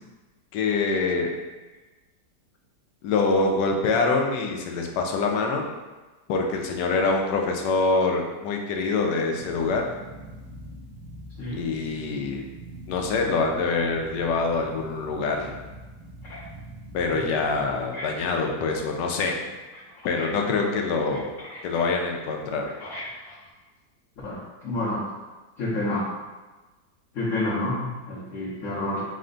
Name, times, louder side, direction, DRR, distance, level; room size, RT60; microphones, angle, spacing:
voice 1, 0.5-1.3 3.0-5.7 6.3-9.8 11.5-12.4 12.9-15.5 16.9-19.4 20.0-21.2 21.6-22.7, left 3 dB, 80° left, 2 dB, 1.2 m, -25 dB
sound 1, 9.4-17.9, right 1 dB, 85° right, 1.3 m, -43 dB
voice 2, 22.8-23.3 24.2-25.0 25.6-26.1 27.1-29.0, left 1 dB, 55° left, -9 dB, 1.1 m, -29 dB
4.2 x 2.2 x 3.8 m, 1.2 s
omnidirectional pair, 1.8 m